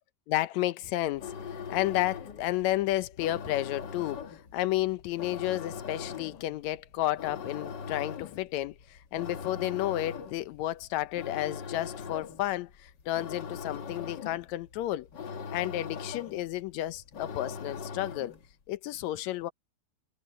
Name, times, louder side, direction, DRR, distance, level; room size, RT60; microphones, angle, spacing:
voice 1, 0.3-15.1 15.5-18.4 18.7-19.5, left 15 dB, 75° left, 1.7 m, -32 dB
sound 1, 1.1-18.5, left 6 dB, 55° left, 1.2 m, -41 dB
omnidirectional pair, 4.0 m